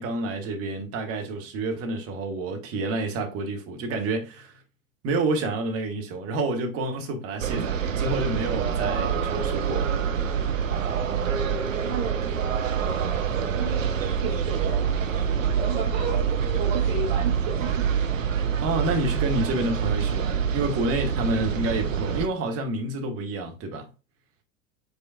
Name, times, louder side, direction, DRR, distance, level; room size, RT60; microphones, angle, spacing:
voice 1, 0.0-4.5 5.0-10.0 18.6-23.9, right 2 dB, 35° right, 1.5 m, -29 dB
sound 1, 7.4-22.3, right 7 dB, 80° right, 0.7 m, -26 dB
voice 2, 11.1-12.2 12.6-13.9 14.1-17.9, right 4 dB, 55° right, 2.0 m, -34 dB
5.4 x 4.2 x 2.2 m
figure-of-eight pair, 80°, 39 cm